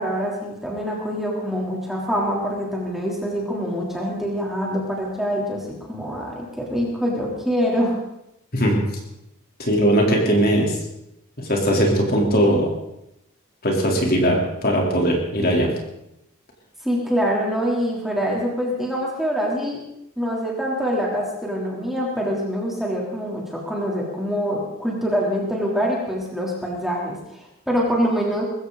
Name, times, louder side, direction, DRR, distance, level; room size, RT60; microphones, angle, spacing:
voice 1, 0.0-8.0 16.8-19.8 20.2-28.4, equal, ahead, -3 dB, 3.4 m, -25 dB
voice 2, 9.6-10.8 11.4-12.7 13.6-15.7, equal, 45° left, -1 dB, 3.7 m, -19 dB
21.0 x 15.5 x 4.1 m, 0.83 s
head